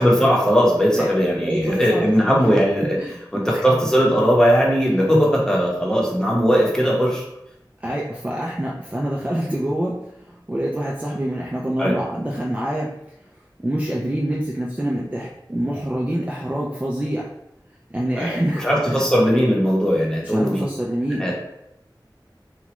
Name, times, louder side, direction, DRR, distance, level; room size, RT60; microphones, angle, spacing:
voice 1, 0.0-3.0 3.3-7.2 11.8-12.0 18.2-20.6 21.2-21.3, equal, 10° left, -3 dB, 0.9 m, -18 dB
voice 2, 1.4-2.4 3.0-3.6 7.8-12.9 13.6-17.3 17.9-19.1 20.2-21.3, right 1 dB, 15° right, -4 dB, 0.4 m, -26 dB
3.0 x 2.3 x 3.0 m, 0.83 s
wide cardioid pair, 40°, 8 cm